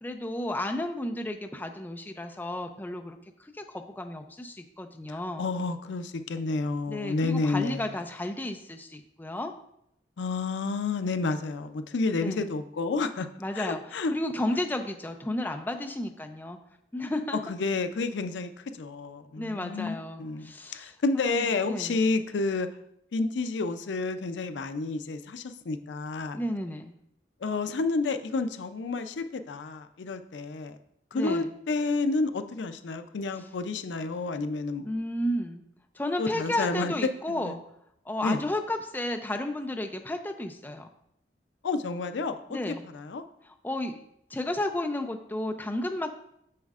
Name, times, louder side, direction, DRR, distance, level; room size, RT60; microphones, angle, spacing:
voice 1, 0.0-5.5 6.9-9.5 12.2-12.5 13.4-13.8 14.1-16.6 16.9-17.5 19.4-22.0 26.3-26.9 31.1-31.5 34.8-35.6 36.0-37.6 38.1-40.9 42.5-42.8 43.4-44.0 44.3-46.1, left 1 dB, 10° left, 5 dB, 0.4 m, -33 dB
voice 2, 5.1-7.9 10.2-13.3 13.5-14.1 17.5-22.7 23.1-26.4 27.4-30.8 31.1-34.9 36.2-37.6 38.2-38.4 41.6-43.2, left 3 dB, 85° left, 9 dB, 0.5 m, -30 dB
7.4 x 6.3 x 2.4 m, 0.75 s
head